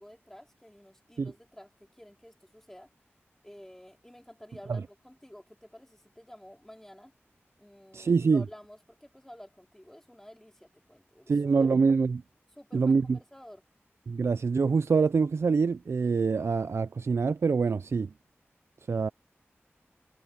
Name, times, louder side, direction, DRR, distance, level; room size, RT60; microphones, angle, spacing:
voice 1, 0.0-2.9 3.4-7.1 7.6-11.3 12.6-13.6, equal, 10° left, 4.1 m, -51 dB
voice 2, 7.9-8.4 11.3-12.2 12.7-13.2 14.1-18.1 18.9-19.1, right 5 dB, 70° right, 0.4 m, -25 dB
wide cardioid pair, 80°, 5 cm